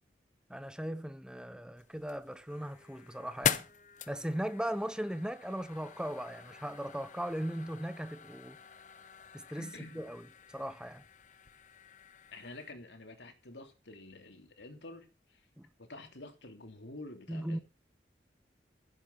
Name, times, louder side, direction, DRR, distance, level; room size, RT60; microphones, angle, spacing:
voice 1, 0.5-3.6 4.1-8.6 9.3-10.2 10.5-11.0 15.6-15.7 17.3-17.6, equal, 5° right, 0.9 m, -38 dB
sound 1, 1.8-12.7, left 7 dB, 45° left, 0.9 m, -42 dB
voice 2, 9.5-10.1 12.3-15.5 15.8-17.6, left 2 dB, 80° left, 3.1 m, -49 dB
15.5 x 8.1 x 6.0 m
head